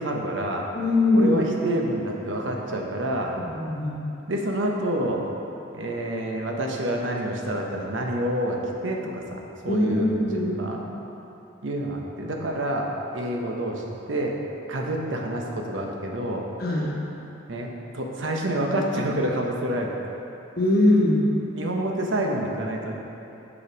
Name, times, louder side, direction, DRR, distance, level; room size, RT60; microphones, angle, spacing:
voice 1, 0.0-0.7 1.1-3.3 4.3-5.2 5.7-10.8 11.6-14.4 14.7-16.4 17.5-20.0 21.5-22.9, right 1 dB, 85° right, 0 dB, 0.9 m, -28 dB
voice 2, 0.7-1.4 3.4-4.0 9.7-10.6 16.6-16.9 20.6-21.3, left 2 dB, 50° left, -3 dB, 1.2 m, -21 dB
7.0 x 5.3 x 5.1 m, 2.9 s
head